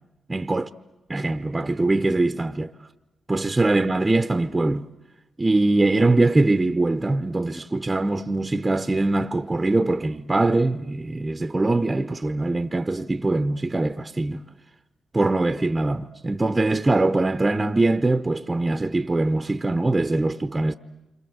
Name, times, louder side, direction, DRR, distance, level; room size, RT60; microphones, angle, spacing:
voice 1, 0.3-0.7 1.1-2.7 3.3-4.9 5.4-14.4 15.1-20.7, right 2 dB, 20° right, 0.9 m, -22 dB
28.0 x 26.0 x 8.0 m
cardioid pair, 70°, 0 cm